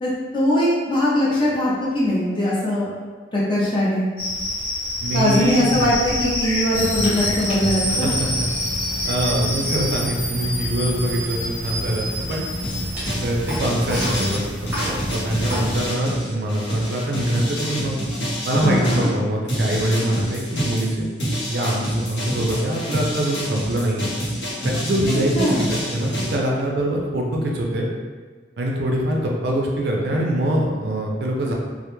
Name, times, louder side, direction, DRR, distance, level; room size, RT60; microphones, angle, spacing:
voice 1, 0.0-2.9 3.3-4.1 5.1-8.1 18.6-19.1 25.3-25.7, left 1 dB, 25° left, -7 dB, 0.6 m, -21 dB
Cricket, 4.2-10.0, left 2 dB, 50° left, 0.9 m, -27 dB
voice 2, 5.0-5.9 7.8-8.5 9.0-12.4 13.2-14.4 14.8-18.0 18.5-24.1 24.6-27.9 28.6-31.5, right 1 dB, 60° right, -1 dB, 0.4 m, -24 dB
sound 1, 6.7-15.9, equal, 10° right, 0.8 m, -28 dB
sound 2, 12.6-19.1 19.5-26.3, equal, 80° left, 0.8 m, -28 dB
2.1 x 2.0 x 3.0 m, 1.4 s
head